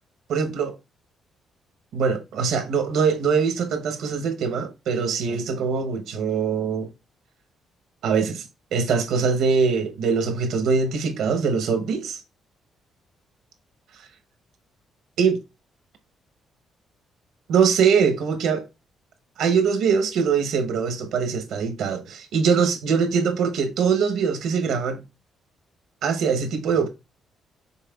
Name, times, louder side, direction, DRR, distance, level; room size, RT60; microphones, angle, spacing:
voice 1, 0.3-0.7 1.9-6.9 8.0-8.4 8.7-12.2 15.2-15.4 17.5-18.6 19.4-25.0 26.0-26.9, right 6 dB, 80° right, 0.8 m, -22 dB
5.6 x 3.7 x 2.3 m
cardioid pair, 90°, 0 cm